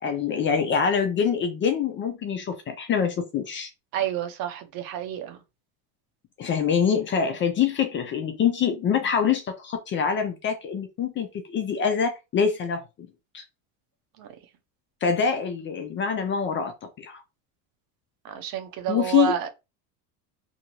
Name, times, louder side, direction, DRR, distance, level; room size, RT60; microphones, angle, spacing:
voice 1, 0.0-3.7 6.4-12.8 13.3-13.4 15.0-17.2 18.9-19.3, left 7 dB, 30° left, 0.4 m, -25 dB
voice 2, 3.9-5.4 14.2-14.3 18.2-19.5, right 11 dB, 50° right, 0.7 m, -29 dB
2.7 x 2.6 x 2.8 m
supercardioid pair, 120°, 45 cm